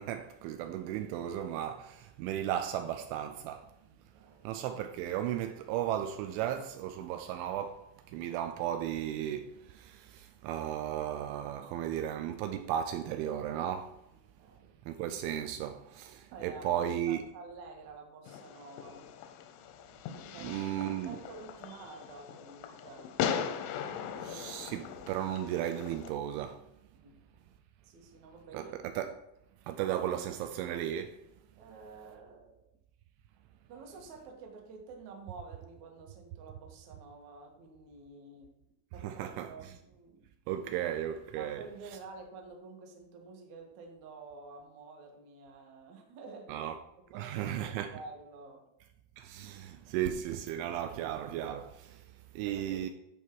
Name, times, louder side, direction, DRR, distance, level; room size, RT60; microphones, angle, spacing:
voice 1, 0.0-3.7 4.4-14.0 14.9-17.2 20.4-21.2 24.2-26.7 28.5-29.1 29.7-31.2 39.0-39.5 40.5-41.7 46.5-46.8 47.2-47.9 49.2-52.9, right 11 dB, 85° right, 2.8 m, -35 dB
voice 2, 4.1-4.5 14.4-14.8 16.3-19.1 20.3-20.8 21.1-23.1 26.9-27.2 27.8-28.7 31.6-32.7 33.7-38.5 38.9-40.2 41.4-46.7 47.1-48.7 52.5-52.8, right 4 dB, 65° right, 1.8 m, -50 dB
Fireworks, 18.3-26.1, left 8 dB, 90° left, 3.3 m, -39 dB
12.5 x 4.6 x 4.6 m
omnidirectional pair, 5.6 m